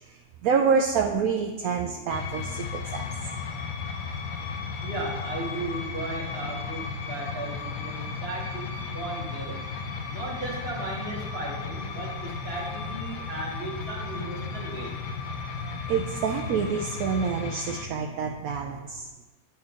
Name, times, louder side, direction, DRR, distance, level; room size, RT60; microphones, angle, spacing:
voice 1, 0.4-3.0 15.9-19.0, right 6 dB, 70° right, 3 dB, 0.9 m, -27 dB
sound 1, 2.1-17.9, left 5 dB, 85° left, 1.3 m, -34 dB
voice 2, 4.8-9.6 10.1-15.0, right 2 dB, 40° right, -1 dB, 1.5 m, -36 dB
10.5 x 4.4 x 3.6 m, 1.1 s
omnidirectional pair, 1.7 m